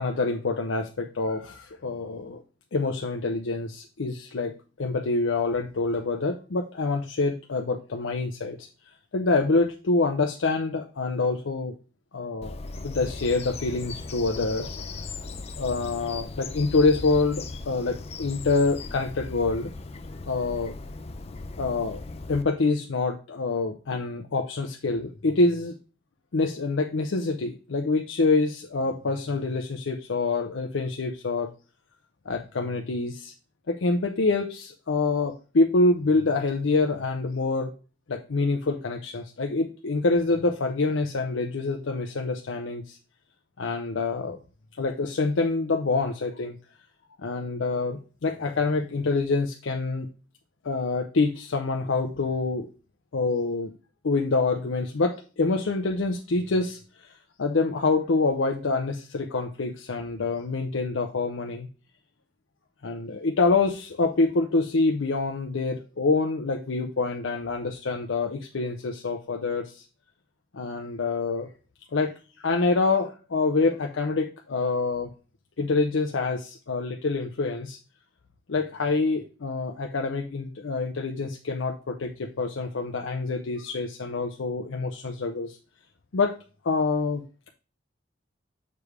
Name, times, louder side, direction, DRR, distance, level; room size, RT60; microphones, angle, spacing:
voice 1, 0.0-2.4 2.7-8.7 9.1-11.7 12.1-12.6 12.8-14.8 15.6-19.7 20.3-20.7 21.6-22.0 22.3-25.7 26.3-31.5 32.3-33.3 33.7-37.7 38.1-43.0 43.6-44.4 44.8-46.6 47.2-50.1 50.6-52.7 53.1-53.7 54.0-57.1 57.4-61.7 62.8-69.8 70.5-71.5 71.9-75.1 75.6-77.8 78.5-85.6 86.1-86.4 86.6-87.5, left 3 dB, 80° left, 4 dB, 0.6 m, -26 dB
Bird vocalization bird call bird song, 12.4-22.4, left 3 dB, 30° left, 0.5 m, -38 dB
6.8 x 3.3 x 4.7 m, 0.36 s
head